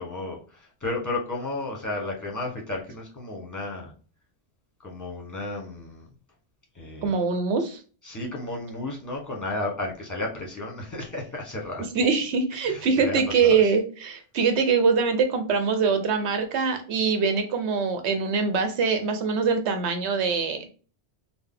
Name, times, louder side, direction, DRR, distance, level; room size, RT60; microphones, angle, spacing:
voice 1, 0.0-3.9 4.8-6.1 6.7-7.1 8.0-11.9 12.6-13.7, left 2 dB, 15° left, -1 dB, 1.0 m, -33 dB
voice 2, 7.0-7.8 11.9-20.7, right 5 dB, 80° right, 7 dB, 0.9 m, -23 dB
4.0 x 2.1 x 3.7 m, 0.37 s
omnidirectional pair, 1.1 m